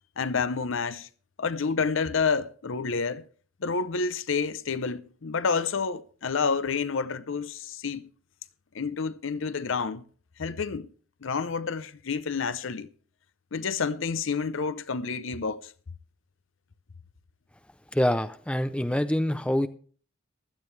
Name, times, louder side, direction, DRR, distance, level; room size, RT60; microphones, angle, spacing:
voice 1, 0.2-1.1 1.4-3.2 3.6-8.1 8.7-10.0 10.4-10.9 11.2-12.9 13.5-15.7, left 5 dB, 60° left, 0.6 m, -29 dB
voice 2, 17.9-19.7, left 1 dB, 5° left, 0.5 m, -25 dB
15.5 x 12.0 x 3.3 m
head